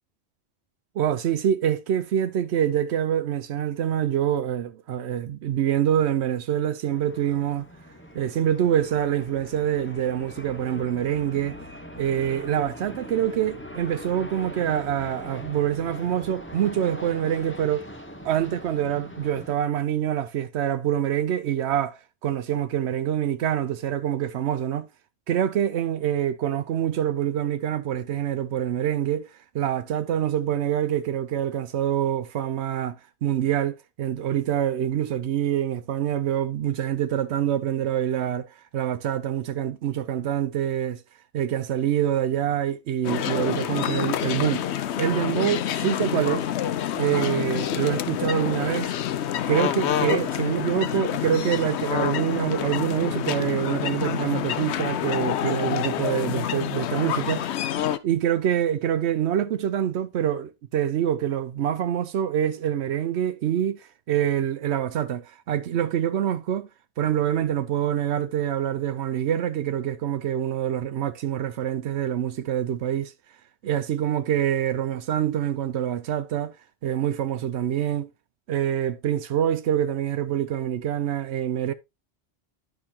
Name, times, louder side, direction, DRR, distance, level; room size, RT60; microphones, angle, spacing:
voice 1, 1.0-7.7 8.1-11.6 11.9-17.9 18.2-24.9 25.3-29.3 29.5-41.0 41.3-44.6 45.0-46.5 47.0-48.9 49.5-57.5 58.0-66.7 67.0-73.1 73.6-76.5 76.8-78.1 78.5-81.7, right 10 dB, 85° right, 0.9 m, -25 dB
sound 1, 6.9-19.5, equal, 10° left, 1.0 m, -41 dB
sound 2, 43.0-58.0, left 10 dB, 85° left, 0.9 m, -27 dB
10.5 x 6.0 x 2.8 m
omnidirectional pair, 1.1 m